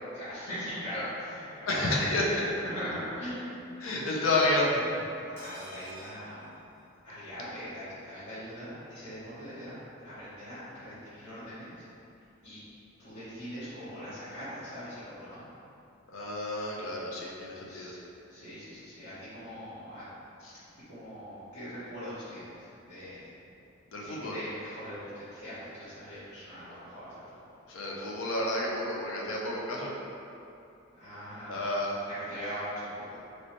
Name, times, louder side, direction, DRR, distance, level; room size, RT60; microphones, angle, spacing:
voice 1, 0.1-2.2 2.7-3.7 4.9-6.6 7.0-9.8 10.0-11.8 12.4-12.6 13.0-15.5 17.6-18.0 18.3-20.1 20.9-23.3 24.0-27.2 30.9-31.7 32.1-33.2, equal, 90° left, -17 dB, 1.2 m, -41 dB
voice 2, 1.7-2.5 3.8-4.8 16.1-17.9 20.4-20.5 23.9-24.4 27.7-29.9 31.5-32.0, left 1 dB, 70° left, -3 dB, 0.6 m, -30 dB
sound 1, 5.4-7.3 7.6-7.7 8.0-8.1, right 1 dB, 10° left, 1.1 m, -50 dB
3.2 x 3.1 x 2.8 m, 2.7 s
head